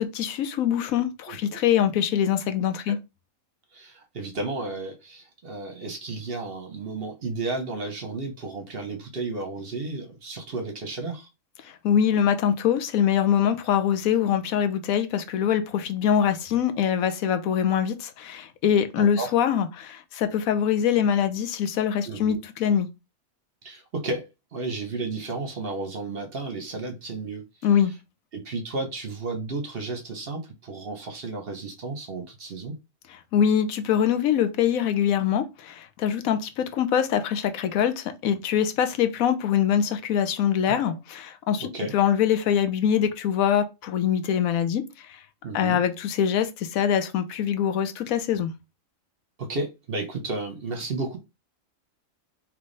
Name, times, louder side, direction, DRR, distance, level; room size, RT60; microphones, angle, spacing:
voice 1, 0.0-3.0 11.6-22.9 27.6-27.9 33.3-45.2 45.5-48.5, left 9 dB, 85° left, 1.1 m, -24 dB
voice 2, 1.3-1.6 2.9-3.0 3.7-11.3 19.0-19.3 22.1-22.4 23.6-24.3 24.5-27.4 28.3-32.7 41.6-41.9 45.4-45.8 49.4-51.2, right 3 dB, 50° right, 0.9 m, -33 dB
3.4 x 3.1 x 3.9 m
omnidirectional pair, 1.4 m